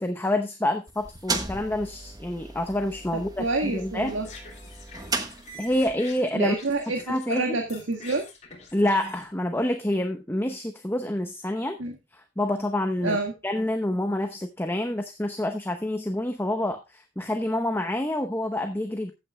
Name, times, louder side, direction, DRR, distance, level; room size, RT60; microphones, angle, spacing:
voice 1, 0.0-4.1 5.6-6.5 7.1-7.6 8.7-11.8 12.1-13.2 13.4-19.1, left 1 dB, 10° left, 6 dB, 0.9 m, -27 dB
ceramics kiln, 0.9-6.0, right 3 dB, 20° right, 1.2 m, -35 dB
voice 2, 3.1-4.3 6.3-8.2 11.8-12.0 13.0-13.3, right 2 dB, 90° right, 3 dB, 1.8 m, -28 dB
sound 1, 4.1-7.4 7.7-9.3, left 3 dB, 40° left, 3.1 m, -46 dB
15.0 x 8.7 x 2.2 m, 0.24 s
head